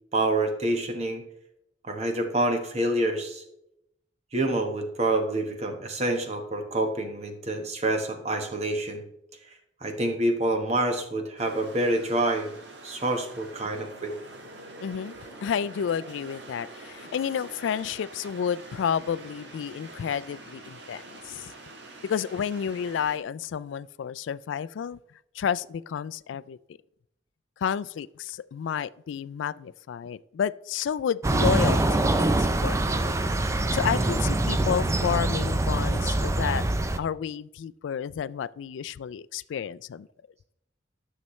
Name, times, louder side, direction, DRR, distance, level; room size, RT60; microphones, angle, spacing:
voice 1, 0.1-1.2 1.8-3.4 4.3-9.0 9.8-12.5 12.8-14.1, right 1 dB, 35° right, 1.2 m, -27 dB
sound 1, 11.4-23.2, right 2 dB, 65° right, 1.3 m, -45 dB
voice 2, 14.8-15.2 15.4-21.5 22.0-25.0 25.3-26.6 27.6-33.2 33.7-36.7 37.0-40.1, left 7 dB, 80° left, 0.3 m, -31 dB
sound 2, 31.2-37.0, right 2 dB, 15° right, 0.4 m, -24 dB
12.5 x 6.6 x 3.1 m
head